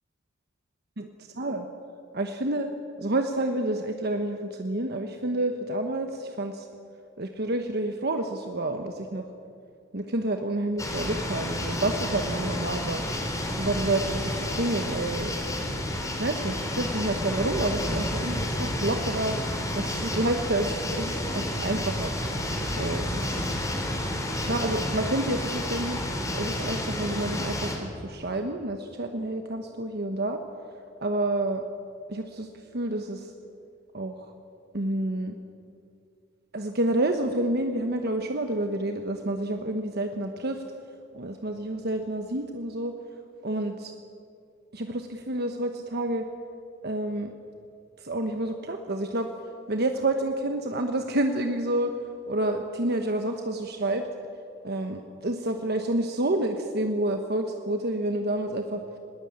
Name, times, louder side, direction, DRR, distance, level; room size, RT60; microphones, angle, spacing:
voice 1, 2.1-2.7 3.0-6.7 7.2-9.2 9.9-13.0 13.5-15.3 16.2-19.3 19.7-22.1 22.8-23.8 24.4-26.0 26.3-30.4 31.0-31.6 32.1-33.3 33.9-34.3 34.7-35.3 36.5-40.6 41.1-42.9 43.4-43.9 44.7-46.3 46.8-47.3 48.0-49.3 49.7-51.9 52.3-54.1 54.6-58.8, right 1 dB, 55° right, 5 dB, 1.2 m, -29 dB
sound 1, 10.8-27.8, left 1 dB, 15° left, 3.6 m, -30 dB
20.5 x 18.5 x 8.8 m, 2.5 s
head